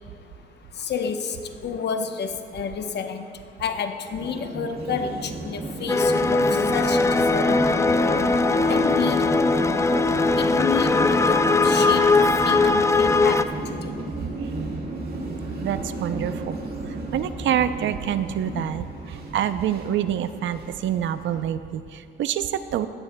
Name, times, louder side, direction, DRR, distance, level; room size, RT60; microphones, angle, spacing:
voice 1, 0.8-1.4 1.6-3.3 3.6-7.6 8.7-9.5 10.4-13.4 13.7-13.9 18.5-18.7, left 6 dB, 60° left, 7 dB, 0.9 m, -30 dB
sound 1, 4.2-21.4, right 2 dB, 50° right, 1.9 m, -33 dB
sound 2, 5.9-13.4, left 3 dB, 15° left, 0.4 m, -20 dB
voice 2, 15.6-16.6 16.8-22.9, right 10 dB, 70° right, 12 dB, 0.5 m, -27 dB
17.0 x 13.5 x 2.2 m, 2.3 s
cardioid pair, 90°, 20 cm